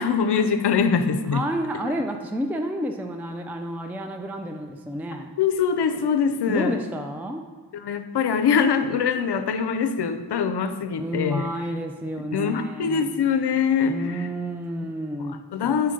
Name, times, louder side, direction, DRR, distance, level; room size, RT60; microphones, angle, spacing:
voice 1, 0.0-1.4 5.4-6.8 7.7-11.5 12.3-14.3 15.3-15.9, left 6 dB, 65° left, 9 dB, 0.6 m, -23 dB
voice 2, 1.3-5.3 6.5-7.4 11.0-13.1 13.9-15.4, right 1 dB, 5° right, 4 dB, 0.4 m, -30 dB
7.1 x 4.4 x 3.8 m, 1.5 s
cardioid pair, 55°, 44 cm